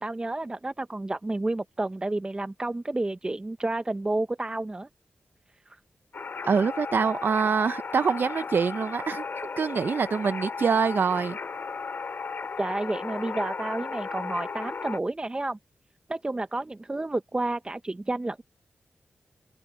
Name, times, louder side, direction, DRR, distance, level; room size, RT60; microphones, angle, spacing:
voice 1, 0.0-4.9 5.7-5.8 12.6-15.6 16.1-18.4, right 2 dB, 25° right, 0.7 m, -30 dB
sound 1, 6.1-15.0, left 5 dB, 60° left, 2.6 m, -35 dB
voice 2, 6.4-9.2 9.6-11.4, right 6 dB, 60° right, 0.5 m, -25 dB
open air
cardioid pair, 70°, 4 cm